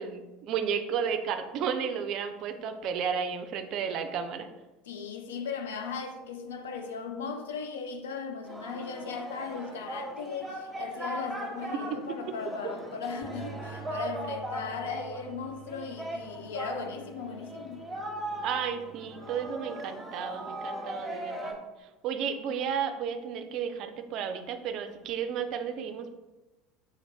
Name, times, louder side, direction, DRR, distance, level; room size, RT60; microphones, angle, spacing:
voice 1, 0.0-4.5 11.7-11.8 12.3-12.4 18.4-21.6 22.0-26.1, right 7 dB, 55° right, 0.3 m, -33 dB
voice 2, 4.9-17.9, left 5 dB, 75° left, 0.4 m, -37 dB
Singing, 8.4-21.5, right 1 dB, 10° right, 0.9 m, -39 dB
sound 1, 13.2-19.5, right 6 dB, 20° left, 0.9 m, -49 dB
3.9 x 2.5 x 3.3 m
figure-of-eight pair, 70°, 0 cm